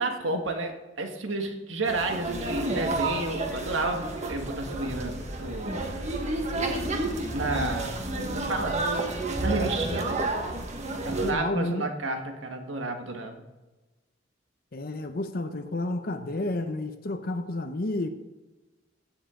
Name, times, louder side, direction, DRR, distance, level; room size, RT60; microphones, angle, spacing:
voice 1, 0.0-5.8 7.3-7.9 8.3-8.8 9.4-10.2 11.0-13.3, right 2 dB, 85° right, 4 dB, 1.6 m, -31 dB
sound 1, 1.9-11.3, right 2 dB, 35° right, 1.4 m, -30 dB
voice 2, 11.2-11.8 14.7-18.1, left 2 dB, 50° left, 8 dB, 0.8 m, -31 dB
16.0 x 7.4 x 3.8 m, 1.1 s
head